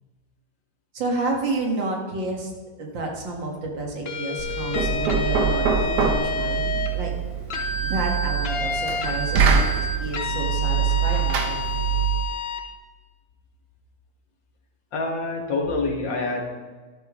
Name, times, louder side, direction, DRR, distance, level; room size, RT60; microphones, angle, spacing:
voice 1, 0.9-2.5 2.8-7.1 7.9-11.6, right 2 dB, 90° right, 0 dB, 2.4 m, -30 dB
sound 1, 4.1-6.9 7.5-12.6, left 3 dB, 45° left, 0.9 m, -29 dB
Knock, 4.4-12.3, right 6 dB, 70° right, 1.5 m, -24 dB
voice 2, 14.9-16.4, left 3 dB, 85° left, 0 dB, 2.4 m, -26 dB
12.5 x 11.5 x 3.1 m, 1.3 s
omnidirectional pair, 2.0 m